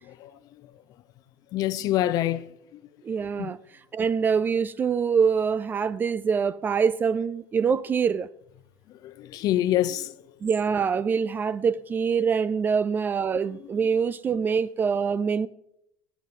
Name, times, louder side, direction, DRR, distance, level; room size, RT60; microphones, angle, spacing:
voice 1, 1.5-2.4 3.4-3.5 9.0-10.1, left 13 dB, 50° left, 0.6 m, -25 dB
voice 2, 3.0-3.6 3.9-8.3 10.4-15.5, right 6 dB, 25° right, 0.3 m, -24 dB
18.0 x 8.3 x 3.7 m
supercardioid pair, 130°, 8 cm